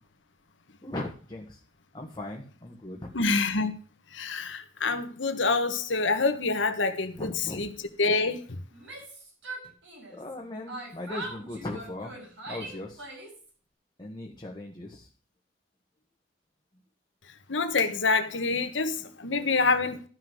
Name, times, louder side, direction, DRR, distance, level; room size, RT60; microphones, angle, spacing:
voice 1, 0.8-1.6 1.9-3.1 7.2-7.7 10.1-12.1 12.5-13.0 14.0-15.1, left 1 dB, 25° left, 1.5 m, -38 dB
voice 2, 3.1-3.7 4.1-7.7 8.0-8.4 17.5-20.0, left 3 dB, 85° left, 1.3 m, -26 dB
Yell, 8.7-10.3 10.7-13.5, right 2 dB, 85° right, 5.2 m, -41 dB
12.5 x 5.8 x 6.3 m
head